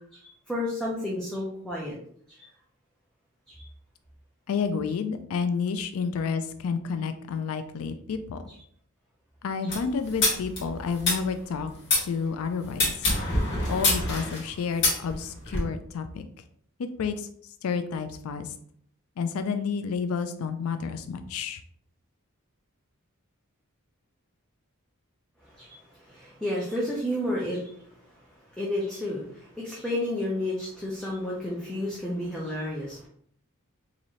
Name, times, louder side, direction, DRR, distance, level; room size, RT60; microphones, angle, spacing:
voice 1, 0.1-2.0 2.3-2.5 3.5-3.7 25.4-27.8 28.1-28.2 28.6-33.1, left 1 dB, 5° left, -5 dB, 0.6 m, -31 dB
voice 2, 4.5-8.4 9.4-11.7 12.0-12.9 13.7-16.3 16.8-17.3 17.6-18.5 19.2-21.6, left 5 dB, 75° left, 9 dB, 0.4 m, -30 dB
sound 1, 9.7-12.1 12.7-15.6, left 2 dB, 55° left, 1.4 m, -26 dB
4.0 x 2.6 x 3.1 m, 0.63 s
head